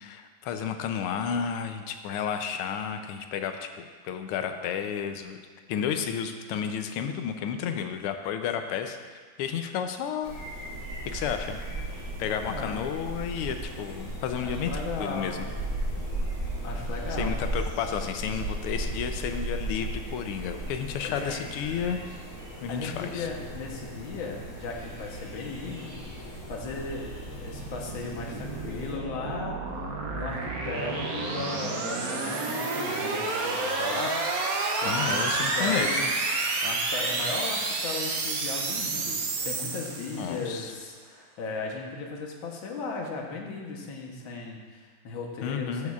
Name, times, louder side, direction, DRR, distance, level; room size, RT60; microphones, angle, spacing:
voice 1, 0.0-5.4 5.7-10.4 11.0-11.6 12.2-14.7 15.0-15.5 17.2-22.0 22.6-23.3 34.8-36.1 40.2-40.7 45.4-45.9, left 8 dB, 85° left, 7 dB, 1.6 m, -32 dB
sound 1, 10.2-28.9, right 1 dB, 50° left, 3.3 m, -36 dB
voice 2, 12.4-12.8 14.4-15.4 16.6-17.4 21.0-21.4 22.7-27.1 27.4-29.6 30.1-34.2 34.8-36.1 36.6-45.9, left 3 dB, 70° left, 0 dB, 1.7 m, -36 dB
sound 2, 26.3-40.5, right 3 dB, 60° right, 0.9 m, -30 dB
13.5 x 6.4 x 2.4 m, 1.5 s
omnidirectional pair, 2.4 m